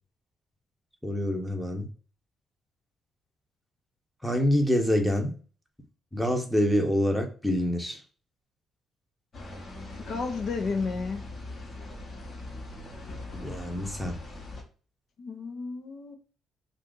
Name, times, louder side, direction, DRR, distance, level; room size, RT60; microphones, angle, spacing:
voice 1, 1.0-1.9 4.2-5.3 6.1-8.0 13.3-14.2, equal, ahead, 0.8 m, -26 dB
sound 1, 9.3-14.6, left 2 dB, 45° left, 1.1 m, -41 dB
voice 2, 10.0-11.2 15.2-16.2, left 4 dB, 60° left, 0.7 m, -32 dB
2.7 x 2.5 x 3.6 m
cardioid pair, 90°, 0 cm